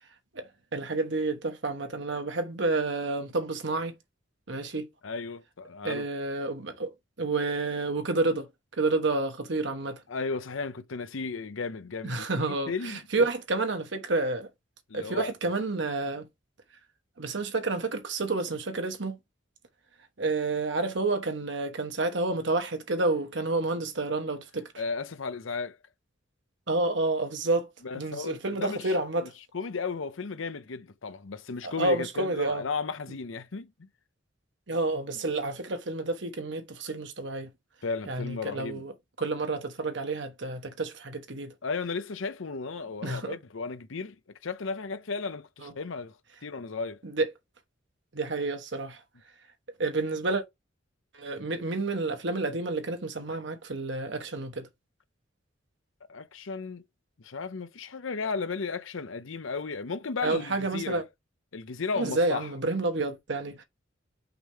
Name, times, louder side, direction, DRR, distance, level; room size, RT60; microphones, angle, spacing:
voice 1, 0.3-3.9 4.5-4.9 5.8-6.9 7.2-8.5 8.8-10.0 12.0-14.5 14.9-16.3 17.2-19.2 20.2-24.7 26.7-27.7 27.9-29.3 31.6-32.6 34.7-37.5 38.1-38.9 39.2-41.5 43.0-43.3 45.6-45.7 47.0-47.3 48.1-49.0 49.8-50.4 51.1-54.7 60.2-61.0 61.9-63.6, right 3 dB, 60° right, 1.2 m, -29 dB
voice 2, 5.0-6.0 10.1-13.3 14.9-15.3 24.8-25.8 27.8-29.0 29.2-29.3 29.5-33.9 37.8-38.8 41.6-44.2 44.4-46.1 46.4-47.0 56.1-56.8 57.2-61.0 61.5-62.5, left 4 dB, 80° left, 0.7 m, -34 dB
5.9 x 3.5 x 4.6 m
head